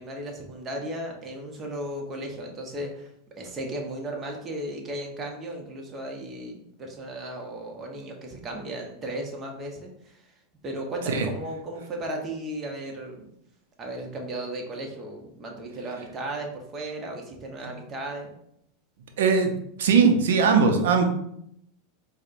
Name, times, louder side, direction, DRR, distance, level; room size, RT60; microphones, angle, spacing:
voice 1, 0.0-3.1 3.4-10.3 10.6-13.2 13.8-18.3, right 1 dB, 30° right, 1 dB, 0.8 m, -35 dB
voice 2, 19.2-19.5 19.8-21.0, right 5 dB, 80° right, 5 dB, 0.5 m, -19 dB
4.1 x 2.1 x 2.5 m, 0.74 s
hypercardioid pair, 110°, 0 cm